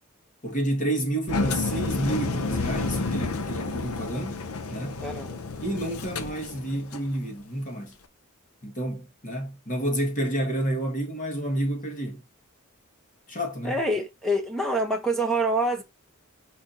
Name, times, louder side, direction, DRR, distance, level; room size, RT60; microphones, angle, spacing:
voice 1, 0.4-4.4 4.7-5.0 5.6-7.9 8.6-12.2 13.3-13.8, right 1 dB, 35° left, 1.9 m, -29 dB
Engine, 1.3-7.1, left 3 dB, 85° left, 0.7 m, -30 dB
voice 2, 5.0-5.4 13.6-15.8, right 1 dB, ahead, 1.0 m, -26 dB
5.1 x 4.3 x 4.2 m
head